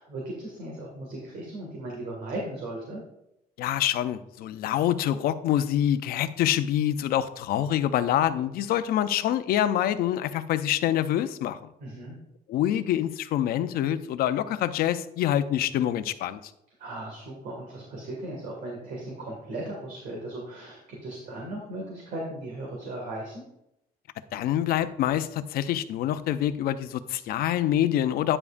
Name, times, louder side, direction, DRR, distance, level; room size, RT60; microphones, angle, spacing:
voice 1, 0.0-3.0 11.8-12.1 16.8-23.4, right 1 dB, 65° right, -2 dB, 2.1 m, -37 dB
voice 2, 3.6-11.6 12.5-16.4 24.3-28.4, left 11 dB, 75° left, 12 dB, 0.5 m, -26 dB
9.7 x 7.1 x 2.6 m, 0.82 s
cardioid pair, 175°, 16 cm